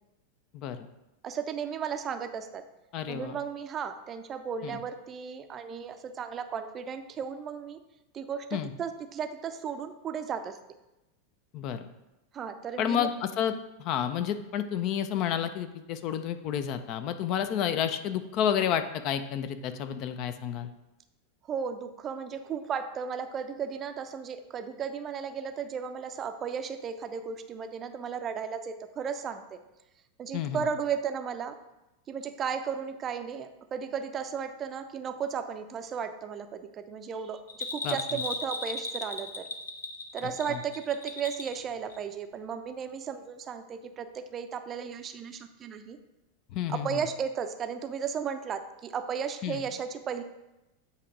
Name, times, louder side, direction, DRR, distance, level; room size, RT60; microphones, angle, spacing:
voice 1, 0.5-0.9 2.9-3.4 4.6-4.8 8.5-8.7 11.5-11.9 12.8-20.7 30.3-30.6 37.8-38.2 40.5-40.6 46.5-47.0 49.4-49.6, left 9 dB, 40° left, 10 dB, 0.5 m, -30 dB
voice 2, 1.2-2.6 3.1-7.8 8.1-10.6 12.3-13.1 21.5-29.6 30.2-31.5 32.1-37.4 37.7-39.5 40.1-46.0 46.7-50.2, right 7 dB, 30° right, 8 dB, 0.5 m, -35 dB
Bell, 37.5-41.6 41.9-42.0, left 3 dB, 70° left, 0.8 m, -36 dB
8.2 x 3.0 x 5.2 m, 0.96 s
figure-of-eight pair, 90°, 0 cm